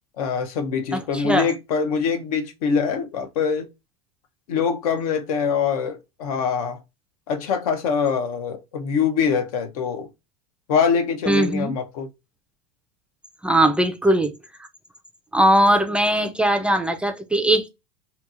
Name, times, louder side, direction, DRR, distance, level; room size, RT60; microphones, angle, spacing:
voice 1, 0.2-3.7 4.5-6.8 7.3-10.1 10.7-12.1, left 6 dB, 75° left, 0.7 m, -24 dB
voice 2, 0.9-1.5 11.3-11.7 13.4-14.3 15.3-17.7, right 1 dB, 5° right, 0.3 m, -20 dB
2.7 x 2.7 x 2.4 m
hypercardioid pair, 105°, 18 cm